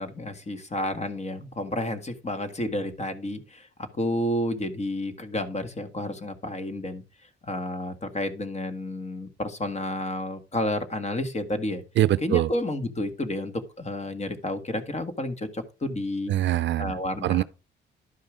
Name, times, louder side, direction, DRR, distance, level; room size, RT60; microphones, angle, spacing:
voice 1, 0.0-3.7 3.9-11.8 12.2-16.3 16.8-17.4, left 1 dB, 35° left, 1.8 m, -31 dB
voice 2, 12.0-12.5 16.3-16.9 17.2-17.4, right 13 dB, 65° right, 0.5 m, -23 dB
11.5 x 5.3 x 5.0 m
cardioid pair, 90°, 20 cm